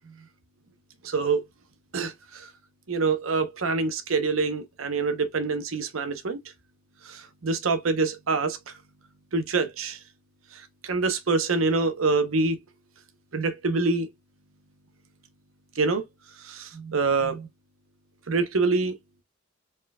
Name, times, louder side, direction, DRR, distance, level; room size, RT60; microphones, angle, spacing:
voice 1, 1.0-1.4 1.9-2.5 2.9-6.4 7.1-8.6 9.3-10.0 10.5-12.6 13.3-14.1 15.8-16.0 16.4-17.5 18.3-18.9, right 4 dB, 80° right, 0.8 m, -25 dB
4.4 x 3.8 x 2.2 m
head